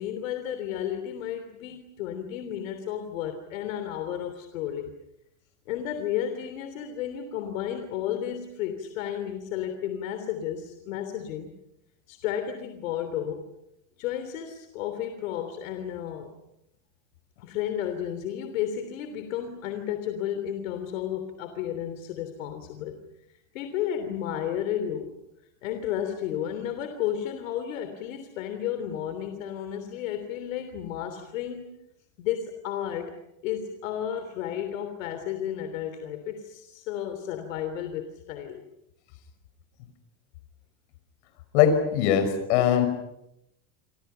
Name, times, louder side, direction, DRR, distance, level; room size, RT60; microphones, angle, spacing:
voice 1, 0.0-4.9 5.7-11.5 12.1-13.4 14.0-16.3 17.4-23.0 23.5-25.1 25.6-31.7 32.2-33.2 33.4-38.6, left 10 dB, 80° left, 8 dB, 3.3 m, -32 dB
voice 2, 41.5-42.9, left 9 dB, 60° left, 9 dB, 5.5 m, -21 dB
29.0 x 26.5 x 5.8 m, 0.84 s
supercardioid pair, 180°, 39 cm